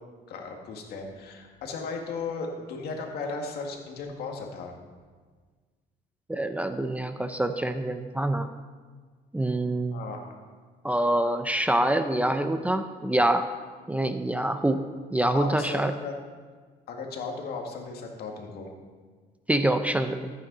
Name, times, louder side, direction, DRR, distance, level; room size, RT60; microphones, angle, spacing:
voice 1, 0.3-4.7 9.9-10.2 15.3-16.1 16.9-18.7, left 4 dB, 70° left, 2 dB, 2.0 m, -36 dB
voice 2, 6.3-8.5 9.3-10.0 10.8-13.5 13.9-14.8 15.1-15.9 19.5-20.3, right 1 dB, 10° right, 8 dB, 0.5 m, -25 dB
14.0 x 9.1 x 4.0 m, 1.5 s
cardioid pair, 110°, 17 cm